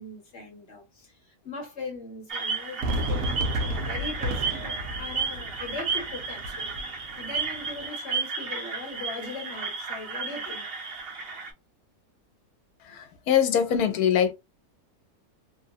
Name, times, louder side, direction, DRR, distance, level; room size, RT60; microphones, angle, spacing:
voice 1, 0.0-10.7 12.8-13.1, left 3 dB, 50° left, 1.3 m, -40 dB
sound 1, 2.3-11.5, right 5 dB, 45° right, 1.0 m, -33 dB
Fireworks, 2.8-7.9, right 1 dB, 75° right, 1.1 m, -33 dB
voice 2, 12.8-14.3, left 8 dB, 80° left, 1.2 m, -23 dB
3.0 x 2.3 x 2.6 m
omnidirectional pair, 1.6 m